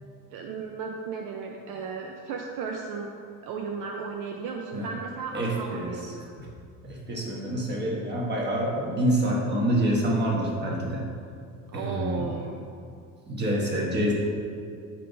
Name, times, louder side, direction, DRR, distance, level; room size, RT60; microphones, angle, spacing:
voice 1, 0.3-3.1 3.4-6.3 11.7-12.7, right 5 dB, 65° right, 1 dB, 0.6 m, -35 dB
voice 2, 5.3-5.9 6.4-6.5 6.8-11.1 11.7-12.3 13.3-14.1, right 1 dB, 30° right, -3 dB, 1.3 m, -27 dB
4.5 x 4.1 x 5.1 m, 2.4 s
cardioid pair, 110°, 35 cm